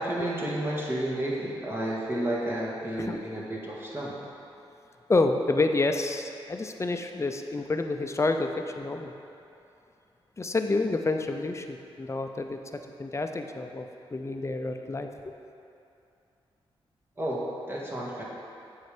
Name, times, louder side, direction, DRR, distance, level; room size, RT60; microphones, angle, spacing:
voice 1, 0.0-4.3 17.2-18.2, right 1 dB, 25° right, -5 dB, 2.0 m, -31 dB
voice 2, 5.1-8.5 8.7-9.1 10.4-12.6 13.0-15.1, left 3 dB, 30° left, 5 dB, 0.6 m, -28 dB
8.0 x 5.6 x 5.0 m, 2.7 s
cardioid pair, 65°, 10 cm